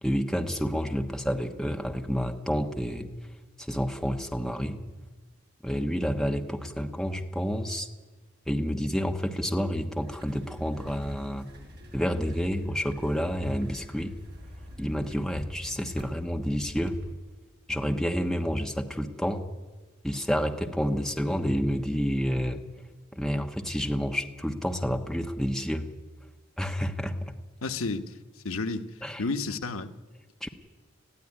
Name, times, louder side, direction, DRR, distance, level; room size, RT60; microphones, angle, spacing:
voice 1, 0.0-3.1 3.6-4.8 5.6-7.9 8.5-11.5 11.9-14.1 14.8-17.0 17.7-19.4 20.0-22.6 23.1-25.9 26.6-27.2 29.0-29.2 30.4-30.5, equal, ahead, 3 dB, 1.2 m, -29 dB
sound 1, 10.0-17.1, equal, 50° right, 4.4 m, -47 dB
voice 2, 27.6-28.1 28.4-28.9 29.2-29.9, left 3 dB, 90° left, 8 dB, 1.2 m, -31 dB
20.5 x 15.0 x 9.9 m, 1.3 s
head